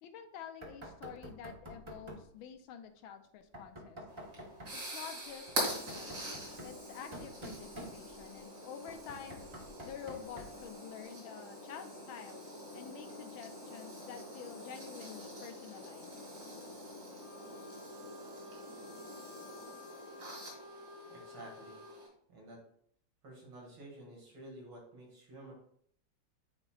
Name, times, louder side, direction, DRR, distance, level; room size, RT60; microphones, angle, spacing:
voice 1, 0.0-4.0 4.7-6.2 6.6-9.4 9.8-12.4 12.7-16.1, left 8 dB, 80° left, 8 dB, 1.4 m, -49 dB
Knock, 0.6-2.3 3.5-4.8 5.5-8.4 8.9-10.7, equal, 20° right, 0.7 m, -49 dB
sound 1, 4.1-22.1, equal, 55° right, 2.8 m, -44 dB
Wind instrument woodwind instrument, 17.1-22.0, left 2 dB, 55° left, 0.8 m, -53 dB
voice 2, 21.1-21.8 22.3-22.6 23.2-25.5, right 1 dB, 75° right, -2 dB, 2.9 m, -51 dB
9.7 x 4.4 x 2.4 m, 0.64 s
omnidirectional pair, 2.3 m